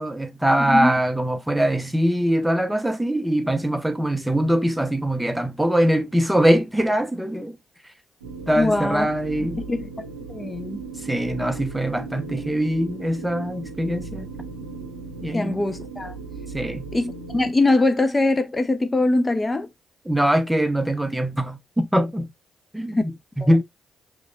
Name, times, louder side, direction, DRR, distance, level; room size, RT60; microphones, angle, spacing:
voice 1, 0.0-7.6 8.5-9.6 11.1-14.3 15.2-15.6 16.5-16.8 20.0-22.3 22.7-23.6, right 1 dB, 5° right, 0.9 m, -22 dB
sound 1, 8.2-17.5, right 4 dB, 85° right, 0.6 m, -37 dB
voice 2, 8.5-9.1 9.7-9.9 10.3-10.8 15.3-16.1 16.9-19.7 22.9-23.0 23.4-23.5, left 2 dB, 25° left, 0.7 m, -22 dB
4.8 x 3.1 x 2.5 m
hypercardioid pair, 40°, 0 cm